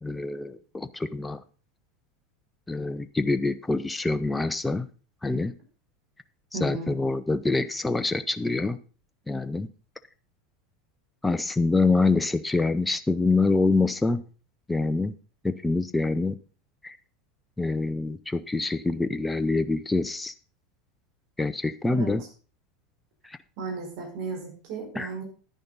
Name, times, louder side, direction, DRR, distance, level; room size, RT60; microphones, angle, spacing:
voice 1, 0.0-1.4 2.7-4.9 5.2-5.5 6.6-8.8 9.3-9.7 11.2-14.2 14.7-15.1 15.4-16.4 16.8-17.0 17.6-20.3 21.4-22.2 23.2-23.4 25.0-25.2, left 3 dB, 10° left, 12 dB, 0.7 m, -25 dB
voice 2, 6.5-6.9 21.9-22.1 23.6-25.2, right 4 dB, 55° right, 0 dB, 4.7 m, -35 dB
10.5 x 10.5 x 4.0 m, 0.38 s
hypercardioid pair, 85°, 0 cm